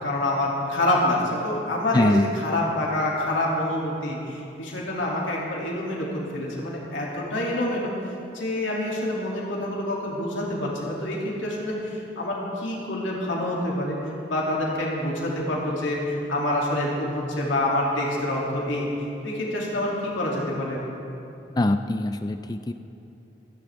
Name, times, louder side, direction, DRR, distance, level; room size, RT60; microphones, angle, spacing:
voice 1, 0.0-7.9 8.3-14.0 14.2-18.9 19.2-20.9, left 1 dB, 85° left, -4 dB, 2.9 m, -27 dB
voice 2, 1.9-2.3 21.6-22.7, left 1 dB, 20° left, 8 dB, 0.4 m, -23 dB
26.5 x 10.5 x 3.7 m, 2.9 s
head